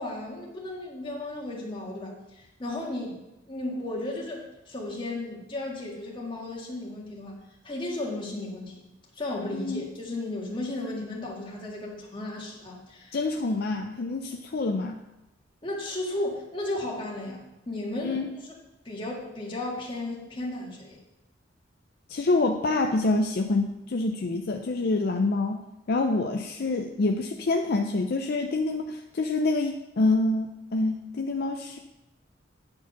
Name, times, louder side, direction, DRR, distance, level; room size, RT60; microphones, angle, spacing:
voice 1, 0.0-8.8 9.2-13.2 15.6-18.2 18.9-21.0, left 2 dB, 30° left, -3 dB, 1.8 m, -34 dB
voice 2, 9.5-9.9 13.1-15.0 18.0-18.3 22.1-25.6 25.9-31.8, left 2 dB, 55° left, 4 dB, 0.5 m, -26 dB
9.6 x 4.4 x 6.0 m, 0.95 s
head